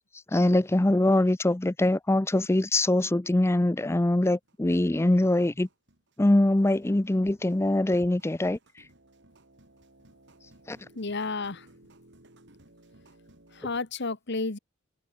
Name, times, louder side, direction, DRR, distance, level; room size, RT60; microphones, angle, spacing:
voice 1, 0.3-5.7 6.2-8.6 10.7-10.8, left 1 dB, 15° left, 0.5 m, -23 dB
sound 1, 2.2-2.3 2.6-13.8, right 1 dB, 60° right, 5.0 m, -59 dB
voice 2, 10.9-11.7 13.5-14.6, left 3 dB, 55° left, 1.5 m, -31 dB
head